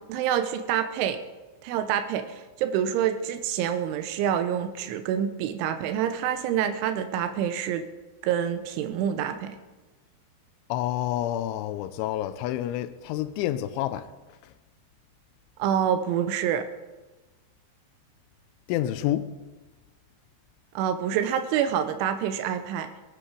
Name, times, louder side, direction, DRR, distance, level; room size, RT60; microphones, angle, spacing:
voice 1, 0.1-1.2 1.6-7.8 8.2-9.6 15.6-16.7 20.8-22.9, right 9 dB, 85° right, 3.2 m, -27 dB
voice 2, 10.7-14.0 18.7-19.3, left 13 dB, 85° left, 3.1 m, -28 dB
20.5 x 10.5 x 5.0 m
omnidirectional pair, 5.4 m